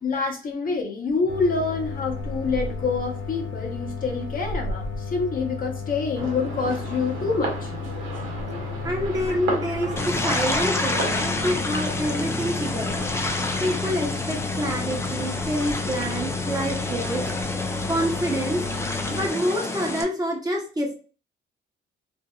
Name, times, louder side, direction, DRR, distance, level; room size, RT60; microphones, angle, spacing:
voice 1, 0.0-7.7 9.3-9.9 10.9-11.0, left 4 dB, 45° left, 0 dB, 0.8 m, -27 dB
sound 1, 1.3-19.3, left 4 dB, 80° left, 0.6 m, -33 dB
sound 2, 6.2-12.2, right 2 dB, 90° right, 1.0 m, -34 dB
voice 2, 8.8-13.1 13.6-17.2 17.9-18.7 19.1-20.9, equal, 20° right, -1 dB, 0.9 m, -27 dB
sound 3, 10.0-20.0, left 2 dB, 15° left, 0.4 m, -28 dB
2.6 x 2.6 x 2.3 m, 0.38 s
cardioid pair, 90°, 20 cm